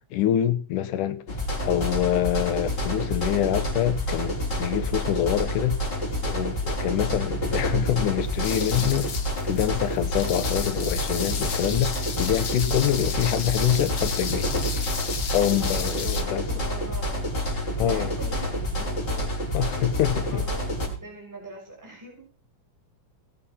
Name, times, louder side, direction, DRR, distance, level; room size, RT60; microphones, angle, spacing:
voice 1, 0.1-1.2 1.6-5.8 6.2-9.1 9.4-14.5 15.3-16.4 17.8-18.1 19.5-20.4, left 11 dB, 80° left, 2.6 m, -25 dB
sound 1, 1.3-20.9, equal, 30° left, 5.8 m, -28 dB
voice 2, 6.8-7.2 15.6-22.3, right 2 dB, 5° right, 5.9 m, -42 dB
sound 2, 8.2-16.2, left 6 dB, 45° left, 2.1 m, -34 dB
19.5 x 8.4 x 5.7 m
omnidirectional pair, 3.7 m